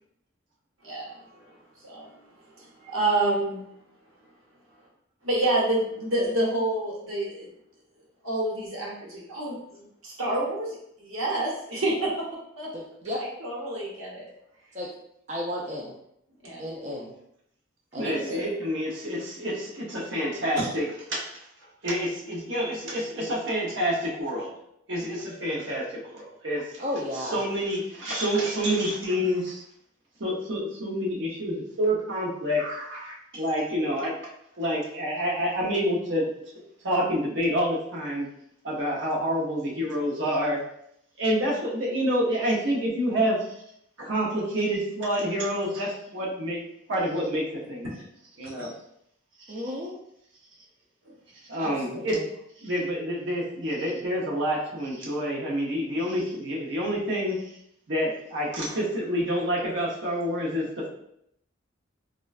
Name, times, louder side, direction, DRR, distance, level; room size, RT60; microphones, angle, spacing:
voice 1, 0.8-2.1 2.4-3.6 5.2-7.5 8.2-12.3 12.6-12.7 13.2-14.3 16.4-16.6 18.0-18.4 48.4-48.7, right 2 dB, 90° right, -4 dB, 1.0 m, -29 dB
voice 2, 12.7-13.2 14.7-14.9 15.3-15.9 16.6-17.1 17.9-18.4 26.8-27.4 49.5-49.9 51.6-52.2, left 1 dB, 35° right, -3 dB, 0.4 m, -33 dB
voice 3, 18.0-21.4 21.8-24.5 24.9-26.8 27.1-29.6 30.2-34.1 34.6-36.3 36.8-38.2 38.6-40.6 41.2-43.5 44.0-46.6 46.9-47.9 48.4-48.7 51.5-52.2 52.6-57.6 57.9-60.9, equal, 65° right, -3 dB, 0.7 m, -28 dB
3.6 x 2.1 x 2.4 m, 0.74 s
head